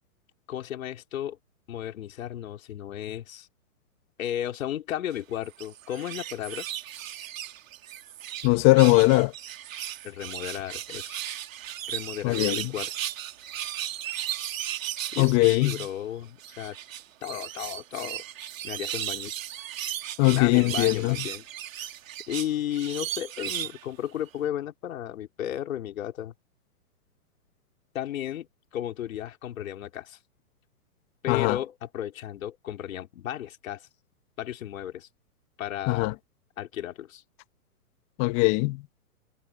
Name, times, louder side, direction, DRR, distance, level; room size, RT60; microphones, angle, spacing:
voice 1, 0.5-1.4 1.7-3.5 4.2-6.7 10.0-11.2 11.9-12.9 15.1-16.8 17.2-18.2 18.6-19.3 20.3-21.4 22.3-26.3 27.9-30.2 31.2-33.9 34.4-35.1 35.6-36.1 36.6-37.2, left 11 dB, 60° left, 3.6 m, -34 dB
sound 1, 5.4-8.5 8.8-15.9 16.4-23.8 24.3-24.4, right 12 dB, 60° right, 3.4 m, -36 dB
voice 2, 8.4-9.3 12.2-12.7 15.2-15.8 20.2-21.2 31.3-31.6 35.9-36.1 38.2-38.8, left 22 dB, 25° left, 1.7 m, -20 dB
hypercardioid pair, 145°, 45 cm